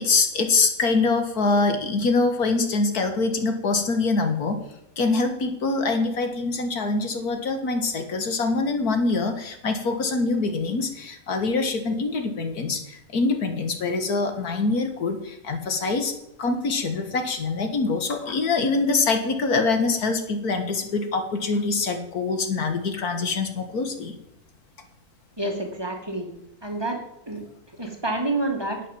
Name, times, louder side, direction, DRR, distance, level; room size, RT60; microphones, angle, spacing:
voice 1, 0.0-4.6 5.0-16.1 16.4-24.1, left 3 dB, 85° left, 6 dB, 2.1 m, -24 dB
voice 2, 25.4-26.3 26.6-27.4 27.7-28.8, right 2 dB, 15° right, 1 dB, 2.2 m, -28 dB
11.0 x 9.1 x 7.4 m, 0.86 s
omnidirectional pair, 1.6 m